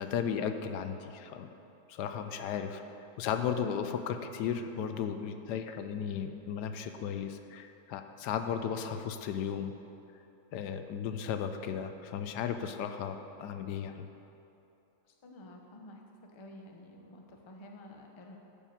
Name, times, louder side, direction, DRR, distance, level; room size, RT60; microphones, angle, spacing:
voice 1, 0.0-1.5 1.9-2.8 3.2-9.7 10.5-14.1, left 7 dB, 80° left, 8 dB, 1.2 m, -35 dB
voice 2, 15.0-16.0 16.3-18.4, left 1 dB, 30° left, 1 dB, 0.5 m, -51 dB
9.2 x 5.4 x 7.1 m, 2.8 s
omnidirectional pair, 1.8 m